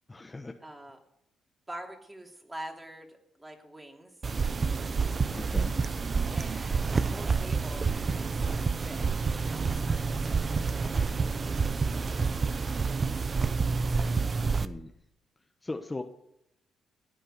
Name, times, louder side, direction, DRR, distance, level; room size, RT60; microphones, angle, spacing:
voice 1, 0.1-0.5 5.3-5.7 14.6-14.9 15.6-16.0, left 2 dB, 20° left, 4 dB, 1.1 m, -38 dB
voice 2, 0.6-1.0 1.7-4.1 6.3-8.5 8.8-11.0 11.7-13.2 13.7-14.2, right 1 dB, 15° right, 2 dB, 3.0 m, -46 dB
sound 1, 4.2-14.7, right 4 dB, 35° right, 0.9 m, -28 dB
15.5 x 9.0 x 6.9 m, 0.80 s
cardioid pair, 90°, 0 cm